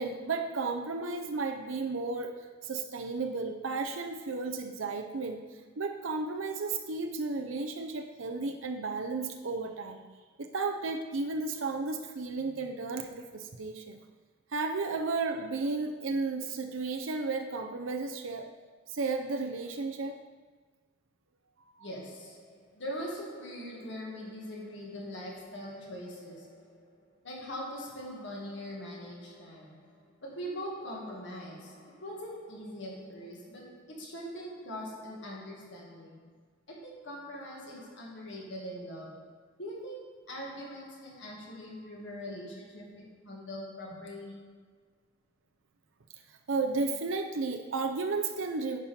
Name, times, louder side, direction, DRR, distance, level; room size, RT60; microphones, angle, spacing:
voice 1, 0.0-5.4 5.8-10.0 10.4-14.0 14.5-18.5 18.9-20.2 46.5-48.8, right 3 dB, 85° right, 4 dB, 0.6 m, -33 dB
voice 2, 21.8-36.3 36.7-44.7, equal, 65° left, -2 dB, 1.9 m, -42 dB
10.0 x 5.5 x 4.3 m, 1.4 s
head